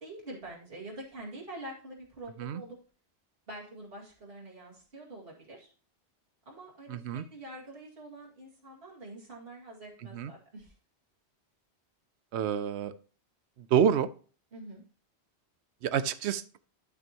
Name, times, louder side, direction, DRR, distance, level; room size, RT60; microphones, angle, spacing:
voice 1, 0.0-2.8 3.5-5.7 6.5-10.7 14.5-14.8, right 1 dB, 60° right, -4 dB, 2.6 m, -45 dB
voice 2, 6.9-7.3 10.1-10.3 12.3-12.9 13.6-14.1 15.8-16.4, right 8 dB, 90° right, 15 dB, 0.9 m, -28 dB
12.5 x 6.0 x 2.9 m, 0.39 s
omnidirectional pair, 1.1 m